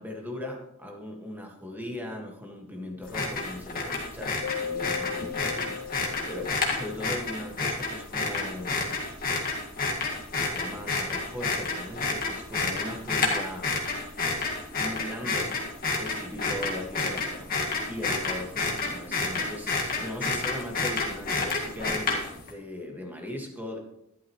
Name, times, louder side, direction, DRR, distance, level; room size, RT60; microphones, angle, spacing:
voice 1, 0.0-8.9 10.4-13.9 14.8-15.6 16.0-17.6 17.9-23.8, left 1 dB, 10° right, 1 dB, 1.8 m, -38 dB
sound 1, 3.0-22.5, left 3 dB, 40° left, 1.9 m, -30 dB
Keyboard (musical), 4.4-7.1, left 7 dB, 85° left, 1.4 m, -37 dB
12.5 x 11.5 x 3.2 m, 0.81 s
head